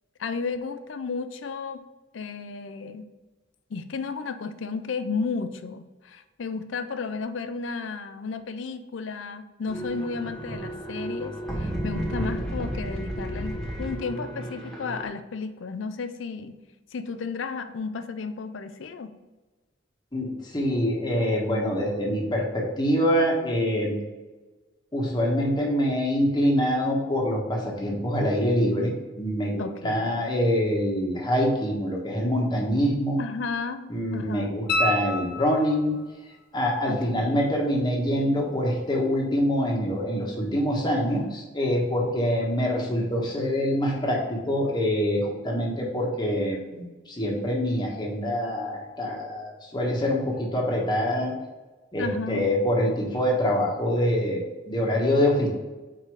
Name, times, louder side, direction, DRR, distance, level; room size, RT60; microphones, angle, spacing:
voice 1, 0.2-1.8 2.1-3.1 3.7-16.6 16.9-19.1 29.6-30.1 33.2-34.5 36.9-37.4 52.0-52.5, left 4 dB, 90° left, 10 dB, 0.5 m, -33 dB
sound 1, 9.7-15.1, right 1 dB, 5° left, 1.0 m, -32 dB
voice 2, 20.1-23.9 24.9-33.2 33.9-35.9 36.5-51.3 51.9-55.5, equal, 25° left, -2 dB, 1.2 m, -25 dB
sound 2, 34.7-36.0 38.8-38.9, left 1 dB, 55° left, 0.7 m, -27 dB
4.8 x 4.7 x 4.8 m, 1.2 s
head